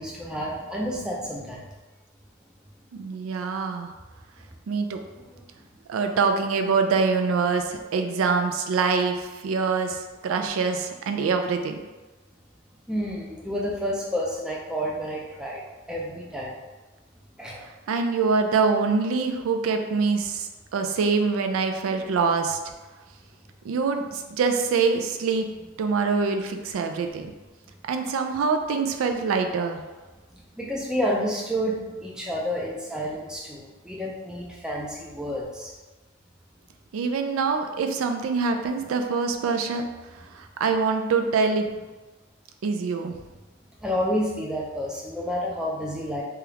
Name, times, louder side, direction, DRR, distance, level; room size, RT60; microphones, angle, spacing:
voice 1, 0.0-1.6 5.2-5.4 12.9-15.6 15.9-16.5 17.4-17.7 30.3-35.7 43.8-46.2, equal, 5° right, -3 dB, 0.3 m, -30 dB
voice 2, 2.9-3.9 4.7-5.0 5.9-11.8 17.9-22.6 23.6-25.5 25.8-27.3 27.9-29.8 36.9-39.8 40.3-41.7 42.6-43.1, right 4 dB, 85° right, 6 dB, 0.3 m, -24 dB
2.9 x 2.3 x 3.3 m, 1.2 s
head